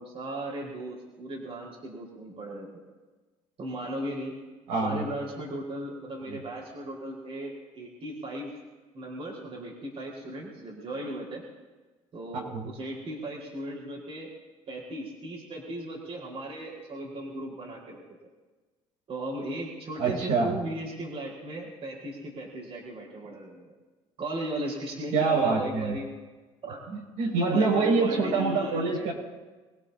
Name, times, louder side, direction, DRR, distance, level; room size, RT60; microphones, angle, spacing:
voice 1, 0.0-2.7 3.6-4.4 4.7-8.5 8.9-11.4 12.1-14.3 14.7-18.0 19.1-23.7 24.2-26.1 26.6-26.8 27.5-29.1, right 1 dB, 50° right, -2 dB, 4.8 m, -37 dB
voice 2, 4.7-5.0 6.3-6.4 12.5-12.7 20.0-20.6 25.1-25.9 26.9-29.1, right 4 dB, 75° right, -2 dB, 6.4 m, -25 dB
26.5 x 17.5 x 2.9 m, 1.3 s
supercardioid pair, 95°, 13 cm